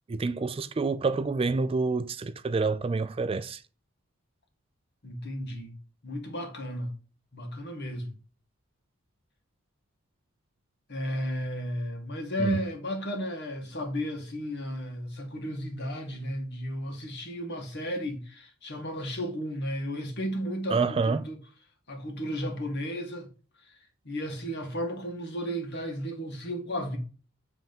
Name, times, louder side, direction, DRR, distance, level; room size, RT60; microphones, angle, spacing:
voice 1, 0.1-3.6 12.4-12.6 20.7-21.3, right 4 dB, 25° right, 0.3 m, -28 dB
voice 2, 5.0-5.7 6.0-6.9 7.3-8.2 10.9-21.4 21.9-23.3 23.6-23.8 24.1-27.0, equal, 55° left, 1.8 m, -34 dB
8.1 x 3.5 x 5.3 m
head